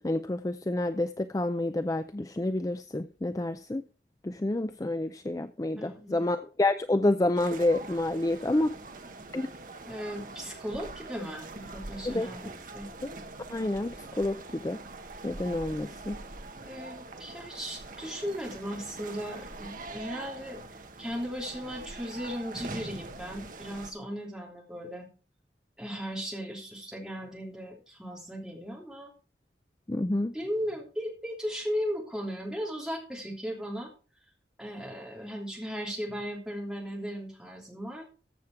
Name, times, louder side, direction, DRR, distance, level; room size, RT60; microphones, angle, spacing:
voice 1, 0.0-3.8 4.2-8.7 9.3-9.5 12.0-12.3 13.0-13.1 13.5-14.8 15.2-16.2 29.9-30.3, left 2 dB, 20° left, 0.4 m, -29 dB
voice 2, 5.8-6.2 9.8-12.9 16.6-20.6 21.0-25.1 25.8-29.1 30.3-33.9 34.6-38.1, equal, 5° right, 3.1 m, -37 dB
sound 1, 7.3-23.9, right 3 dB, 50° right, 1.3 m, -43 dB
14.5 x 7.2 x 4.5 m
head